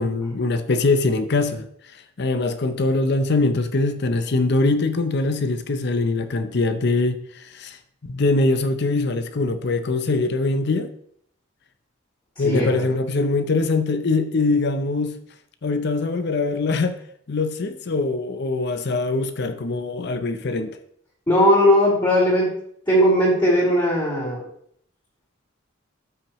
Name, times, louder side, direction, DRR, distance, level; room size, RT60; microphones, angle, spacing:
voice 1, 0.0-1.7 2.2-7.8 8.1-10.9 12.4-15.2 15.6-17.0 17.3-20.7, left 3 dB, 60° left, 0.7 m, -22 dB
voice 2, 12.4-12.8 21.3-22.5 22.9-24.4, equal, 25° left, 3.4 m, -18 dB
13.0 x 6.0 x 3.1 m
head